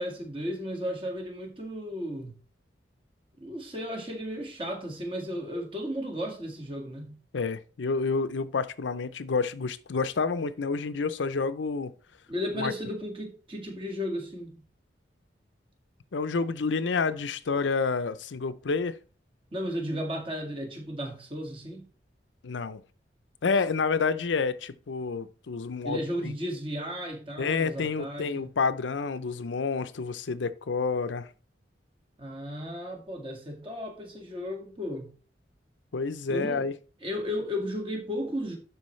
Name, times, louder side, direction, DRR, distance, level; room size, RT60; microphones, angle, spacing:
voice 1, 0.0-2.4 3.4-7.1 12.3-14.6 19.5-21.9 25.8-28.5 32.2-35.1 36.3-36.7 37.0-38.6, equal, 30° right, 1.9 m, -34 dB
voice 2, 7.3-11.9 12.6-12.7 16.1-19.0 22.4-22.8 23.4-26.3 27.4-31.3 35.9-36.7, left 4 dB, 85° left, 0.6 m, -29 dB
11.5 x 4.6 x 3.2 m
head